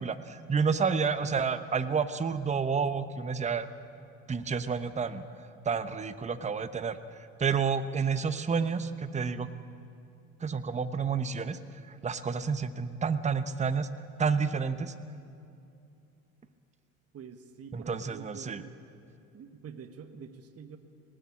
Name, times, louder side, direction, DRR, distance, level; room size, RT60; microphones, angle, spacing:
voice 1, 0.0-3.7 4.3-5.2 5.6-7.0 7.4-9.5 10.4-11.6 11.9-13.9 14.2-14.9 17.7-18.6, right 5 dB, 15° right, 11 dB, 0.9 m, -30 dB
voice 2, 17.1-18.8 19.3-20.8, right 7 dB, 35° right, 7 dB, 1.4 m, -46 dB
19.0 x 17.5 x 8.6 m, 2.6 s
hypercardioid pair, 70°, 42 cm